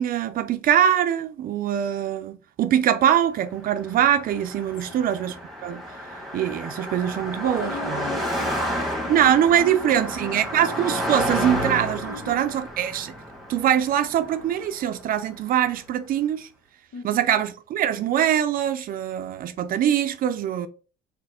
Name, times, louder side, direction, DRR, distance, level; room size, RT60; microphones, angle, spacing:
voice 1, 0.0-5.4 5.6-5.8 6.3-8.0 9.1-13.1 13.5-16.5 17.0-20.7, right 10 dB, 55° right, 0.5 m, -23 dB
Car passing by, 3.7-15.2, equal, ahead, 1.5 m, -31 dB
voice 2, 7.4-10.5 12.0-12.5 16.9-17.4, left 4 dB, 75° left, 1.5 m, -39 dB
4.1 x 2.8 x 4.2 m
cardioid pair, 110°, 17 cm